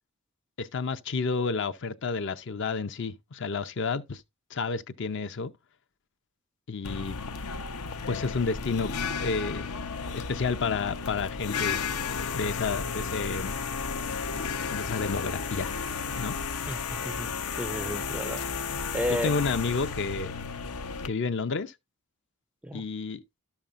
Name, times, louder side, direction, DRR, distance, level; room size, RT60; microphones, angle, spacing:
voice 1, 0.6-4.2 4.5-5.5 6.7-7.2 8.1-8.9 9.2-9.7 10.1-11.8 12.3-13.6 14.7-15.7 16.2-16.3 19.2-20.3 21.0-21.7 22.7-23.2, left 4 dB, 55° left, 0.6 m, -30 dB
sound 1, 6.8-21.1, left 5 dB, 80° left, 0.8 m, -33 dB
voice 2, 16.7-18.4 18.9-19.3 22.6-22.9, equal, 5° right, 0.4 m, -33 dB
12.0 x 7.1 x 2.5 m
head